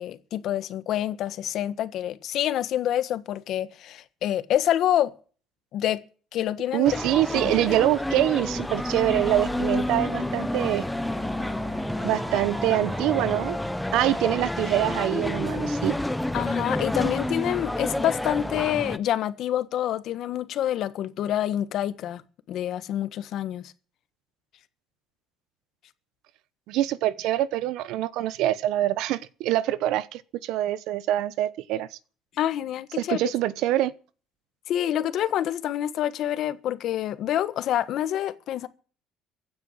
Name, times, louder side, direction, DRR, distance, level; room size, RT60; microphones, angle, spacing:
voice 1, 0.0-5.1 5.7-6.0 6.3-7.0 7.3-7.7 16.3-22.2 22.5-23.7 32.4-33.2 34.7-38.7, left 11 dB, 55° left, 1.4 m, -27 dB
voice 2, 6.7-10.9 12.0-13.6 13.9-16.0 26.7-32.0 33.0-33.9, right 14 dB, 75° right, 0.9 m, -25 dB
sound 1, 6.8-19.0, left 1 dB, 5° left, 0.9 m, -29 dB
sound 2, 8.4-13.5, right 3 dB, 35° right, 7.2 m, -41 dB
16.0 x 9.5 x 7.4 m
cardioid pair, 145°, 0 cm